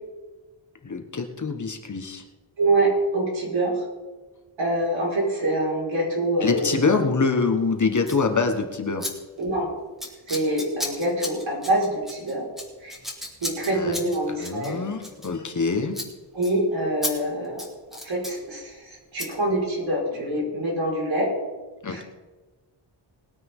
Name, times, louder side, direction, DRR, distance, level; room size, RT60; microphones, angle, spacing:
voice 1, 0.8-2.2 6.4-9.1 13.7-14.0 14.4-16.0 21.8-22.0, left 4 dB, 40° left, 4 dB, 1.4 m, -25 dB
voice 2, 2.6-3.8 4.6-6.7 9.4-9.7 10.3-12.5 12.8-13.0 13.4-14.8 16.3-17.7 18.0-21.3 21.9-22.0, right 1 dB, 75° right, -3 dB, 5.1 m, -25 dB
Scissors, 8.0-8.2 9.0-9.1 9.4-9.6 10.0-15.6 15.9-16.1 16.4-16.5 17.0-17.1 17.4-18.4 19.2-19.3, left 1 dB, ahead, 2.4 m, -34 dB
20.5 x 9.5 x 3.7 m, 1.2 s
wide cardioid pair, 135°, 46 cm